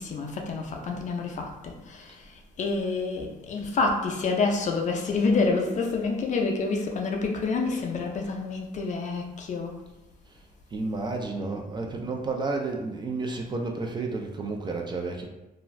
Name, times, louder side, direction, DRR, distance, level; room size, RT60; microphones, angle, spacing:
voice 1, 0.0-9.8, left 3 dB, 45° left, 2 dB, 0.5 m, -28 dB
voice 2, 10.7-15.3, right 3 dB, 25° right, 2 dB, 0.4 m, -31 dB
2.5 x 2.3 x 3.1 m, 0.98 s
cardioid pair, 120°, 17 cm